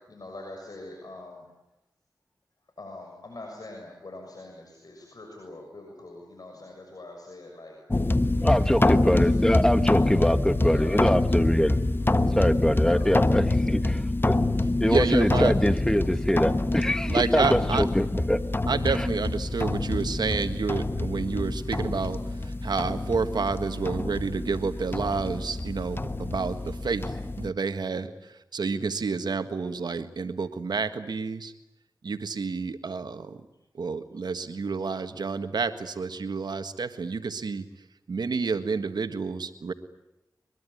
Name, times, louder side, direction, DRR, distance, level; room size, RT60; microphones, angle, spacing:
voice 1, 0.1-1.4 2.8-7.8 8.4-8.7 9.0-9.3 9.9-10.2 10.6-11.0 12.7-13.1 20.0-20.1, left 2 dB, 65° left, 1 dB, 6.7 m, -43 dB
sound 1, 7.9-27.5, left 2 dB, 30° left, 1.3 m, -26 dB
voice 2, 8.4-11.8 12.3-14.3 14.8-18.4 18.9-19.1, equal, 10° left, 10 dB, 1.9 m, -24 dB
voice 3, 14.9-15.5 17.1-17.8 18.7-22.2 22.6-26.6 26.8-27.0 27.4-28.1 28.5-31.5 32.0-33.4 33.8-37.6 38.1-39.7, right 4 dB, 85° right, 9 dB, 1.6 m, -29 dB
23.5 x 22.5 x 9.8 m, 0.91 s
cardioid pair, 45°, 7 cm